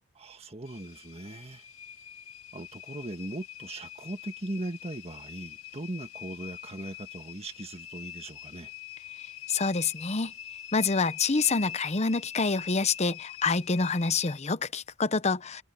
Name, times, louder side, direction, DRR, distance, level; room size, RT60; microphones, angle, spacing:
voice 1, 0.1-1.6 2.5-8.7, right 1 dB, 30° right, 1.6 m, -39 dB
sound 1, 0.7-14.4, left 11 dB, 75° left, 2.2 m, -44 dB
voice 2, 9.5-10.3 10.7-15.6, left 4 dB, 30° left, 0.8 m, -27 dB
head